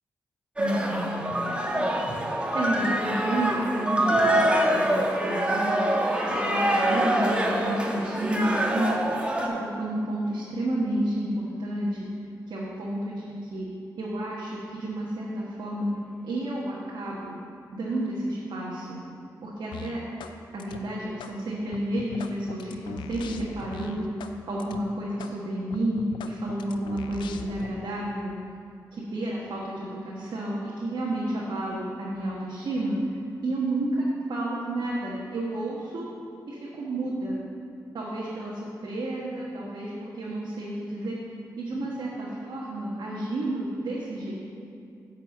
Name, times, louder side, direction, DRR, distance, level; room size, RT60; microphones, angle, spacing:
sound 1, 0.6-9.5, right 1 dB, 15° right, 1.4 m, -25 dB
voice 1, 0.6-1.3 1.8-5.9 6.3-8.9 9.4-12.0 12.5-13.1 13.5-13.7 14.0-15.9 16.2-17.4 17.7-19.0 19.4-20.0 20.5-24.1 24.5-28.3 29.1-33.0 33.4-33.9 34.3-36.0 36.5-37.4 37.9-41.1 41.6-44.3, right 1 dB, 70° right, -5 dB, 1.4 m, -31 dB
sound 2, 19.7-20.3 20.6-21.3 21.7-24.3 24.6-24.8 25.2-25.3 25.7-27.7, left 6 dB, 80° left, 0.4 m, -40 dB
8.3 x 4.8 x 7.2 m, 2.5 s
supercardioid pair, 40°, 8 cm